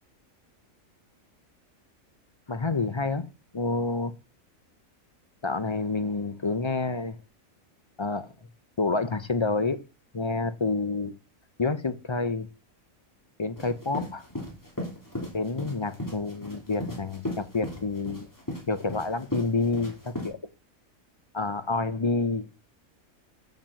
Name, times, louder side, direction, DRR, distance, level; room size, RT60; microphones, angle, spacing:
voice 1, 2.5-3.3 3.5-4.1 5.4-7.2 8.0-8.3 8.8-9.8 10.1-11.1 11.6-12.5 13.4-14.3 15.3-18.3 18.7-20.4 21.3-22.5, left 3 dB, 40° left, 0.4 m, -28 dB
sound 1, 13.6-20.3, left 1 dB, 15° left, 3.3 m, -36 dB
7.4 x 7.3 x 7.5 m
omnidirectional pair, 1.4 m